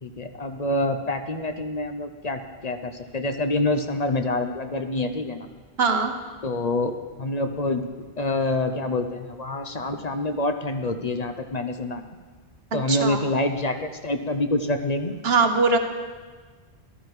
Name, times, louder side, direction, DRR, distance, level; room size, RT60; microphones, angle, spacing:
voice 1, 0.0-5.5 6.4-7.9 8.2-12.0 12.7-15.1, left 2 dB, 40° left, 7 dB, 0.8 m, -26 dB
voice 2, 5.8-6.1 12.9-13.2 15.2-15.8, right 4 dB, 70° right, 6 dB, 1.2 m, -21 dB
14.0 x 12.5 x 4.8 m, 1.4 s
omnidirectional pair, 1.1 m